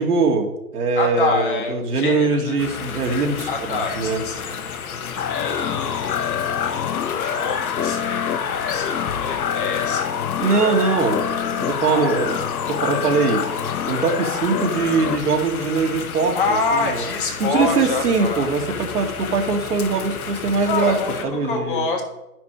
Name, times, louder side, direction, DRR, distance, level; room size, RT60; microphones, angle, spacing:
voice 1, 0.0-4.2 10.4-11.2 11.6-12.4 12.7-13.4 13.9-16.6 17.4-21.0 21.2-21.8, right 4 dB, 70° right, 3 dB, 1.9 m, -21 dB
voice 2, 0.9-2.6 3.5-4.5 5.1-10.1 11.8-12.2 16.3-18.5 20.6-22.0, left 4 dB, 35° left, 3 dB, 1.4 m, -27 dB
sound 1, 2.6-21.2, left 6 dB, 65° left, 1.2 m, -32 dB
sound 2, 5.2-15.2, left 8 dB, 80° left, 0.9 m, -26 dB
10.5 x 6.1 x 4.9 m, 0.92 s
hypercardioid pair, 160°, 47 cm